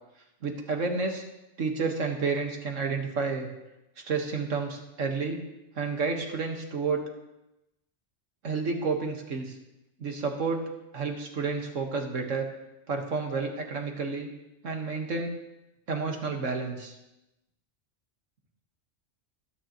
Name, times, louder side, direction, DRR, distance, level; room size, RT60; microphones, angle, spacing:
voice 1, 0.4-1.2 1.6-3.5 4.1-5.4 5.8-7.0 8.4-9.5 10.0-10.7 10.9-12.5 12.9-14.3 14.6-15.3 15.9-16.9, right 4 dB, 90° right, 3 dB, 1.9 m, -30 dB
21.0 x 9.7 x 3.1 m, 0.95 s
omnidirectional pair, 1.3 m